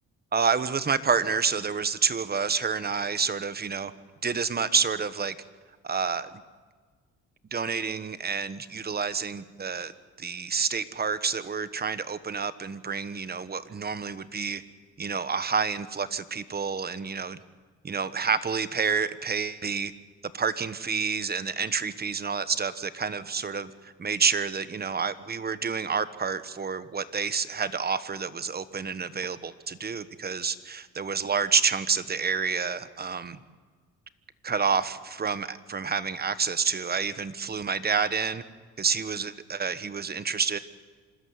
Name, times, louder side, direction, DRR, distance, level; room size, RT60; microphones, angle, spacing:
voice 1, 0.3-3.9 4.2-5.3 5.8-6.4 7.5-9.9 10.2-14.6 15.0-17.4 17.8-19.9 20.3-33.4 34.4-38.4 38.8-40.6, right 5 dB, 30° right, 14 dB, 1.2 m, -28 dB
26.0 x 13.5 x 9.5 m, 1.5 s
cardioid pair, 90°, 30 cm